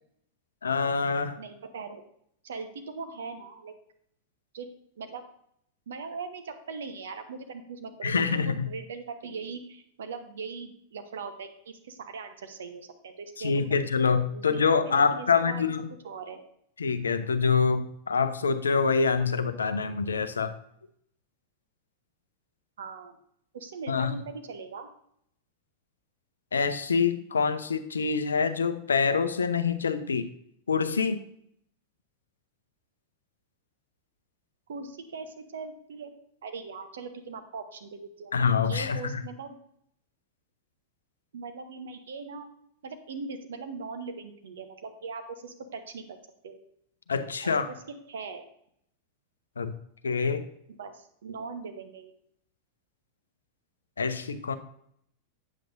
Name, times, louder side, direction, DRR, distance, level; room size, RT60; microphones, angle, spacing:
voice 1, 0.6-1.4 8.0-8.7 13.4-15.9 16.8-20.5 23.9-24.2 26.5-30.3 30.7-31.3 38.3-39.2 47.1-47.7 49.6-49.7 50.0-50.5 54.0-54.5, left 5 dB, 70° left, 11 dB, 0.5 m, -26 dB
voice 2, 1.4-2.0 2.4-3.7 4.5-4.7 5.0-5.2 5.9-13.8 14.3-15.7 16.0-16.4 22.8-23.2 23.5-24.9 34.7-36.1 36.4-38.3 38.6-39.6 41.3-42.5 42.8-46.2 46.4-46.6 47.4-47.5 47.9-48.5 50.8-52.1, right 4 dB, 65° right, 6 dB, 0.9 m, -40 dB
8.1 x 7.6 x 2.6 m, 0.70 s
figure-of-eight pair, 90°, 0 cm